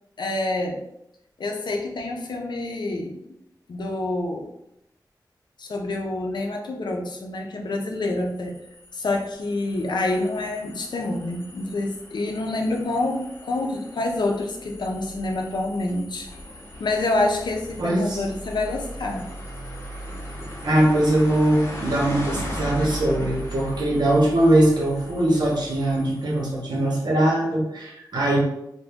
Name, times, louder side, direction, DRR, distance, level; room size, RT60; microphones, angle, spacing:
voice 1, 0.2-0.8 1.4-3.2 3.7-4.5 5.6-8.6 8.9-16.3 16.8-19.3, left 2 dB, 80° left, 2 dB, 0.6 m, -27 dB
sound 1, 8.2-26.7, equal, 35° left, 1.0 m, -38 dB
voice 2, 17.8-18.2 20.6-28.4, right 1 dB, 70° right, -3 dB, 1.1 m, -21 dB
2.6 x 2.6 x 3.5 m, 0.82 s
wide cardioid pair, 80°, 7 cm